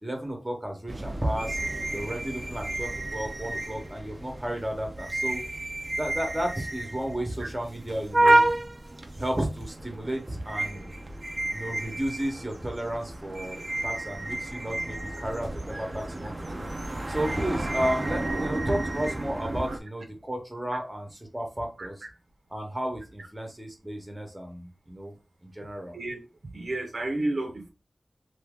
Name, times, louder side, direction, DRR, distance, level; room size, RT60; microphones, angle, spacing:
voice 1, 0.0-1.6 1.9-5.4 5.9-8.5 9.2-10.9 11.5-16.6 17.1-21.9 22.5-25.2 25.4-25.9, right 1 dB, 15° right, 2 dB, 1.0 m, -33 dB
sound 1, 0.9-19.8, right 2 dB, 35° right, 0.5 m, -31 dB
voice 2, 26.5-27.7, right 2 dB, 75° right, 2 dB, 0.8 m, -31 dB
2.8 x 2.7 x 3.5 m, 0.30 s
wide cardioid pair, 85°, 0 cm